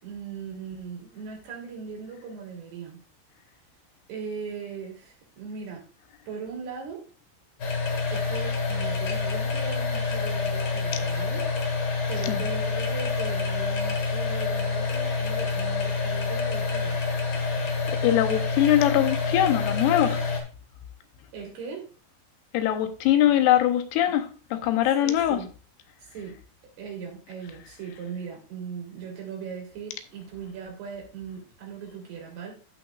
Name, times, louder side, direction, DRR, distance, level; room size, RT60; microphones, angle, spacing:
voice 1, 0.0-3.0 4.1-5.8 6.3-7.0 8.1-11.4 12.1-17.0 21.3-21.9 25.0-25.5 26.0-26.4 26.8-32.5, right 6 dB, 80° right, 5.1 m, -39 dB
sound 1, 7.6-20.4, left 4 dB, 45° left, 1.3 m, -27 dB
voice 2, 17.9-20.2 22.5-25.4, left 11 dB, 90° left, 3.0 m, -22 dB
14.0 x 6.1 x 2.5 m
omnidirectional pair, 4.5 m